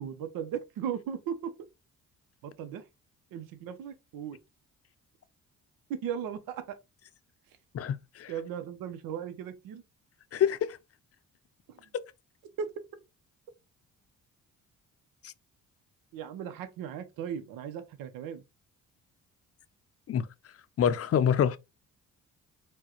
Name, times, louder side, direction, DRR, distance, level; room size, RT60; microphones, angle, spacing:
voice 1, 0.0-1.5 2.4-2.8 3.3-4.4 5.9-6.8 8.3-9.8 11.7-11.8 12.6-12.7 16.1-18.4, right 8 dB, 85° right, 0.6 m, -37 dB
voice 2, 7.7-8.3 10.3-10.8 15.2-15.3 20.1-20.3 20.8-21.6, left 8 dB, 45° left, 0.5 m, -26 dB
4.4 x 2.2 x 2.9 m
cardioid pair, 75°, 33 cm